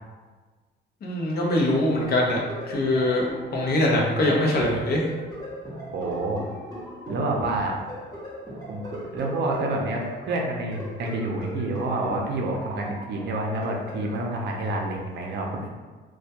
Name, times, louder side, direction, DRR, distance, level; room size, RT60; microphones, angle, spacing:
voice 1, 1.0-2.4 2.7-3.2 3.5-5.0, left 1 dB, 55° left, -2 dB, 0.6 m, -22 dB
sound 1, 1.8-14.2, equal, 20° left, 0.9 m, -39 dB
voice 2, 5.9-6.4 7.1-7.8 8.7-15.7, right 2 dB, 60° right, 0 dB, 0.5 m, -28 dB
2.2 x 2.1 x 2.8 m, 1.3 s
cardioid pair, 90°, 20 cm